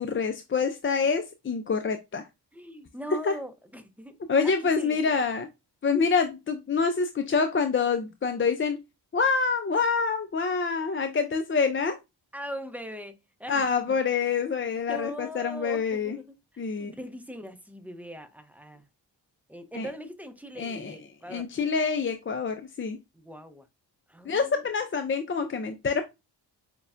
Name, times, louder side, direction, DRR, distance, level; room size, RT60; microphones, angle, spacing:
voice 1, 0.0-2.3 3.2-3.4 4.3-5.5 5.8-8.8 9.1-12.0 13.5-16.2 16.6-16.9 19.7-19.9 20.6-21.0 21.3-23.0 24.3-26.0, left 5 dB, 30° left, 0.4 m, -26 dB
voice 2, 2.5-4.2 4.4-5.1 12.3-14.0 14.9-16.2 16.8-18.8 19.5-21.5 23.1-23.7 24.1-24.6, equal, 5° right, 0.6 m, -41 dB
6.6 x 2.2 x 2.5 m
cardioid pair, 70°, 45 cm